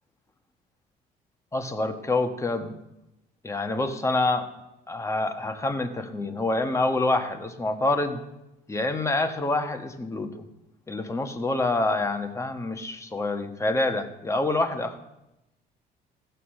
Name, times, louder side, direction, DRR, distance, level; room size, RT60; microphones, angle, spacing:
voice 1, 1.5-2.7 3.4-4.5 4.9-8.2 8.7-10.4 10.9-15.0, left 2 dB, 15° left, 7 dB, 1.3 m, -27 dB
16.5 x 6.8 x 6.5 m, 0.91 s
cardioid pair, 110°, 17 cm